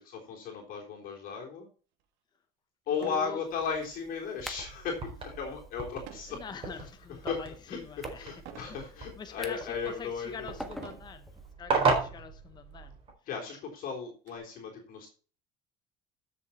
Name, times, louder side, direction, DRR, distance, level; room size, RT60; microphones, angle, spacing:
voice 1, 0.0-1.7 2.9-6.4 6.7-6.8 7.3-7.8 8.2-10.6 13.3-15.1, left 6 dB, 50° left, 3.6 m, -36 dB
sound 1, 2.0-2.1 2.9-3.4 3.8-4.1 6.0-6.4 7.0-7.4 8.4-8.8 9.5-9.6 10.7-11.2 12.2-12.4 12.7-12.8 13.2-14.4, right 8 dB, 65° right, 2.4 m, -49 dB
voice 2, 3.0-3.4 6.3-8.3 8.7-8.8 9.2-11.3 11.6-13.0, left 6 dB, 20° left, 1.0 m, -44 dB
sound 2, 3.5-11.5, equal, ahead, 1.5 m, -50 dB
sound 3, 4.4-13.1, right 4 dB, 30° right, 4.2 m, -35 dB
13.0 x 7.0 x 4.3 m
cardioid pair, 140°, 19 cm